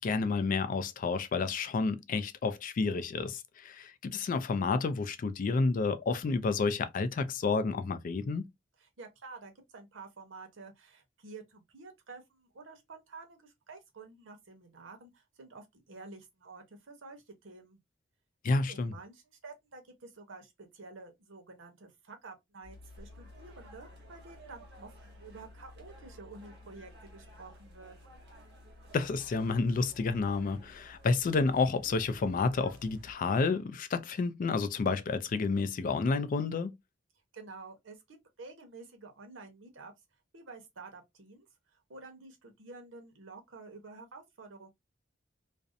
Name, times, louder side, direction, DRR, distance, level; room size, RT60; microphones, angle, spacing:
voice 1, 0.0-8.4 18.4-18.9 28.9-36.7, left 4 dB, 45° left, 0.3 m, -30 dB
voice 2, 8.8-17.8 18.7-28.0 37.3-39.9 40.3-44.7, right 3 dB, 90° right, 0.8 m, -50 dB
sound 1, 22.6-33.1, left 1 dB, 60° right, 0.9 m, -53 dB
2.5 x 2.1 x 2.5 m
head